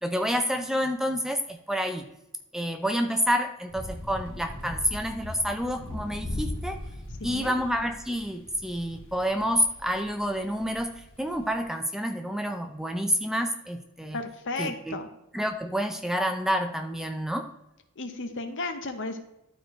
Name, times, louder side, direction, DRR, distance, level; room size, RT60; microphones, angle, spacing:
voice 1, 0.0-2.1 2.5-6.8 7.2-14.2 14.6-15.0 15.3-17.5, equal, ahead, 6 dB, 0.4 m, -28 dB
sound 1, 3.7-11.6, left 1 dB, 75° left, 2.1 m, -39 dB
voice 2, 7.2-7.5 14.1-15.1 18.0-19.2, left 3 dB, 55° left, 7 dB, 1.0 m, -34 dB
12.5 x 4.6 x 3.1 m, 0.88 s
head